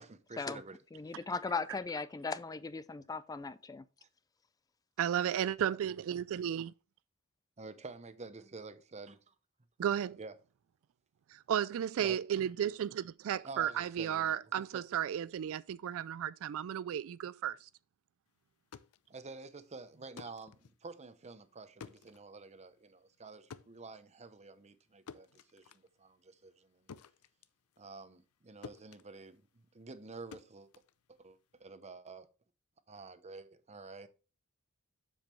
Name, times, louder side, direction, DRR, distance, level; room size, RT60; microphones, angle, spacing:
voice 1, 0.0-0.8 4.0-4.1 7.6-9.3 10.2-10.3 12.0-12.2 13.4-14.8 19.1-26.9 27.8-30.7 31.1-32.3 32.9-34.1, right 3 dB, 30° right, 0.8 m, -49 dB
voice 2, 0.9-3.8, left 4 dB, 15° left, 0.3 m, -38 dB
voice 3, 5.0-6.7 9.8-10.2 11.3-17.7, right 9 dB, 65° right, 0.3 m, -34 dB
sound 1, 18.5-28.4 28.6-31.6, left 6 dB, 85° left, 0.6 m, -55 dB
7.4 x 7.3 x 3.2 m
head